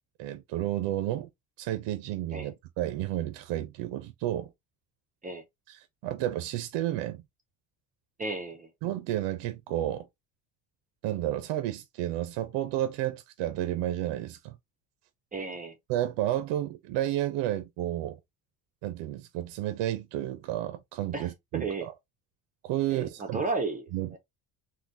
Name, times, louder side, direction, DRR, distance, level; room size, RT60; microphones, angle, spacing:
voice 1, 0.2-1.3 1.6-4.5 5.7-7.2 8.8-10.1 11.0-14.6 15.9-18.2 18.8-21.9 22.6-23.4 23.9-24.2, right 13 dB, 85° right, 0.6 m, -31 dB
voice 2, 8.2-8.7 15.3-15.7 21.1-21.9 22.9-23.8 24.1-24.2, right 3 dB, 20° right, 0.5 m, -33 dB
3.7 x 2.6 x 2.5 m
cardioid pair, 155°, 42 cm